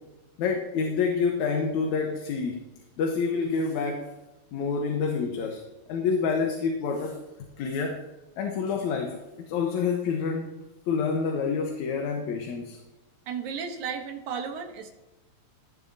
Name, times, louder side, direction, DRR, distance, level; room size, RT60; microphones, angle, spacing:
voice 1, 0.4-2.6 3.0-4.1 4.5-5.6 5.9-7.2 7.6-8.0 8.4-9.2 9.5-10.5 10.9-12.8, left 5 dB, 80° left, 2 dB, 2.5 m, -27 dB
voice 2, 13.3-14.9, right 6 dB, 90° right, 4 dB, 2.6 m, -34 dB
16.5 x 10.5 x 2.8 m, 1.0 s
omnidirectional pair, 3.3 m